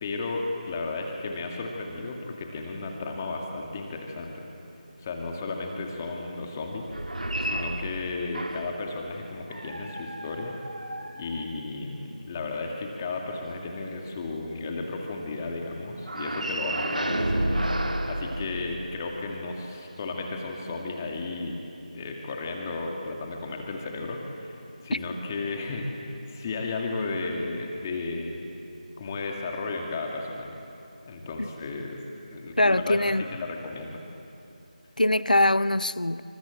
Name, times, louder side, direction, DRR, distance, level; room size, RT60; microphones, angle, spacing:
voice 1, 0.0-4.5 5.0-6.9 7.4-10.6 11.1-21.6 21.9-24.6 24.8-28.4 29.0-30.6 31.1-32.0 32.3-33.0 33.3-34.0, left 3 dB, 20° left, 2.3 m, -34 dB
sound 1, 6.8-8.9 9.5-11.9 16.0-19.2, right 1 dB, 75° right, 2.0 m, -31 dB
voice 2, 32.6-33.3 35.0-36.2, left 1 dB, 80° left, 0.8 m, -22 dB
27.5 x 26.0 x 7.8 m
figure-of-eight pair, 160°, 4 cm